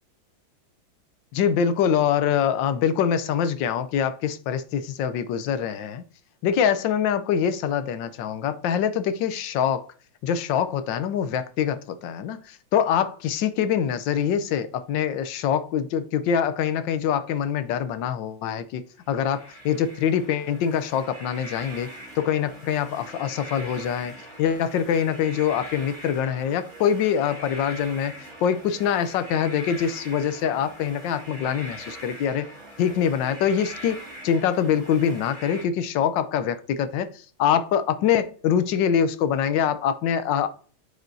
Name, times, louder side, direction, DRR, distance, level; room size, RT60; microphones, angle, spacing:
voice 1, 1.3-6.0 6.4-9.9 10.2-21.9 22.2-32.4 32.8-40.5, left 8 dB, 70° left, 12 dB, 1.3 m, -24 dB
sound 1, 19.1-35.6, right 1 dB, 35° right, 2.9 m, -42 dB
8.7 x 4.9 x 2.7 m, 0.41 s
omnidirectional pair, 2.2 m